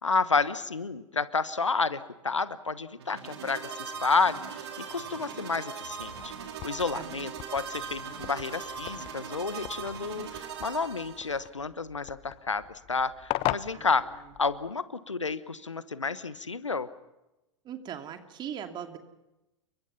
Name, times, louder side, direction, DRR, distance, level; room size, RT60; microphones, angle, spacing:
voice 1, 0.0-6.3 6.6-14.1 14.4-16.9, left 4 dB, 80° left, 15 dB, 1.2 m, -30 dB
sound 1, 3.0-11.5, right 6 dB, 60° right, 3.6 m, -40 dB
sound 2, 6.0-14.7, left 17 dB, 35° left, 0.8 m, -40 dB
voice 2, 17.6-19.0, right 9 dB, 30° right, 6 dB, 2.7 m, -39 dB
29.5 x 23.5 x 5.6 m, 0.97 s
figure-of-eight pair, 90°, 15 cm